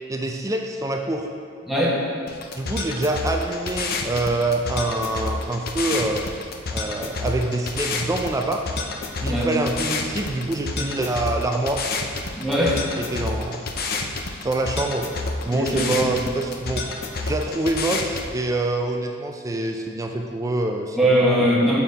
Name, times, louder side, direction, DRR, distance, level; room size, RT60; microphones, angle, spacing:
voice 1, 0.1-1.3 2.5-6.2 6.7-8.8 9.2-11.9 12.5-13.6 13.9-15.1 15.5-21.2 21.6-21.7, right 2 dB, 15° right, 3 dB, 0.4 m, -26 dB
voice 2, 1.7-2.0 9.3-9.6 12.3-12.8 15.5-16.2 20.9-21.8, equal, ahead, -6 dB, 1.3 m, -21 dB
sound 1, 2.3-18.3, left 3 dB, 45° left, 0.6 m, -29 dB
7.1 x 5.8 x 4.1 m, 2.2 s
head